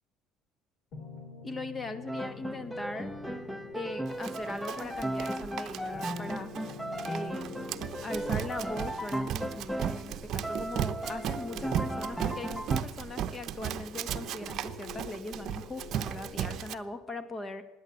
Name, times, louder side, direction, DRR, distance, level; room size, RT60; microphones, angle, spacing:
sound 1, 0.9-16.6, left 5 dB, 60° left, 3.0 m, -47 dB
voice 1, 1.4-3.1 3.7-6.5 7.0-7.6 8.0-17.6, left 2 dB, 25° left, 10 dB, 1.8 m, -40 dB
Piano, 2.1-10.1 10.4-12.8, right 1 dB, 5° left, 1.0 m, -36 dB
Run, 4.2-16.7, right 10 dB, 60° right, 0.8 m, -36 dB
17.0 x 10.5 x 8.1 m, 1.1 s
supercardioid pair, 80°, 0 cm